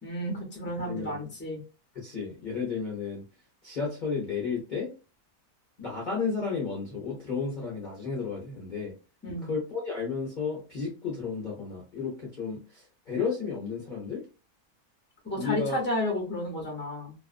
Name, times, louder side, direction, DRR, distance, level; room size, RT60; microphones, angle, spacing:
voice 1, 0.0-1.6 9.2-9.5 15.2-17.1, left 1 dB, 10° left, 0 dB, 0.8 m, -32 dB
voice 2, 0.9-1.2 1.9-3.2 3.6-4.9 5.8-8.9 9.5-14.2 15.4-15.8, left 5 dB, 40° left, -3 dB, 0.8 m, -32 dB
2.6 x 2.4 x 2.4 m, 0.32 s
omnidirectional pair, 1.6 m